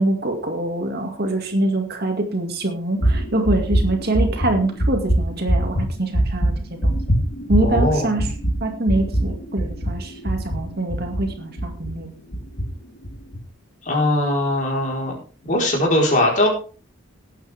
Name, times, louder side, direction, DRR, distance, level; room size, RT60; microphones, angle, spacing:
voice 1, 0.0-6.5 6.8-7.0 7.5-8.3 8.6-12.1, right 1 dB, 50° right, 4 dB, 2.3 m, -24 dB
sound 1, 3.0-12.0 12.3-12.6 13.0-13.4, right 1 dB, 55° left, 3.4 m, -22 dB
voice 2, 7.6-8.1 13.8-15.2 15.4-16.5, left 1 dB, 40° left, -2 dB, 4.5 m, -20 dB
18.5 x 9.1 x 3.6 m, 0.38 s
head